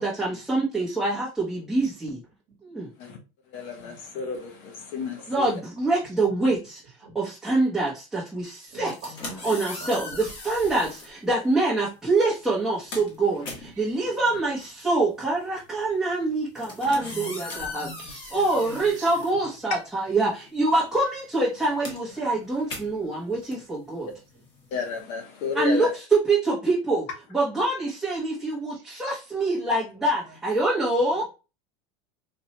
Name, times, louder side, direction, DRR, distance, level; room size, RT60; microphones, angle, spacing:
voice 1, 0.0-2.2 2.6-2.9 5.3-6.8 7.1-8.9 9.4-24.1 25.5-31.2, right 2 dB, 5° right, 0.8 m, -25 dB
voice 2, 3.5-5.5 24.7-25.9, left 5 dB, 50° left, 0.9 m, -32 dB
voice 3, 8.6-9.4 9.8-10.2 16.9-19.1 22.1-22.4 23.5-23.6, right 1 dB, 45° right, 1.2 m, -44 dB
sound 1, 8.8-11.2 12.0-12.2 12.5-20.1 20.3-25.0, left 3 dB, 30° left, 1.1 m, -40 dB
4.2 x 2.2 x 2.8 m
cardioid pair, 175°, 15 cm